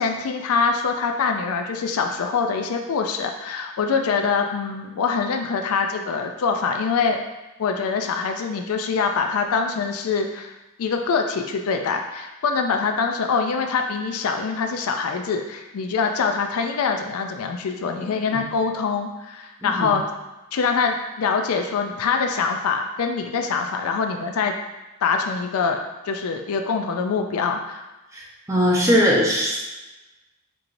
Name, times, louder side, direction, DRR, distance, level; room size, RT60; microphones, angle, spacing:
voice 1, 0.0-7.2 7.6-10.5 10.8-20.0 20.5-24.5 25.0-25.8 26.1-27.8, left 5 dB, 70° left, 4 dB, 0.4 m, -24 dB
voice 2, 19.6-19.9 28.1-29.6, equal, 15° right, -3 dB, 0.6 m, -20 dB
4.5 x 2.8 x 2.6 m, 1.1 s
head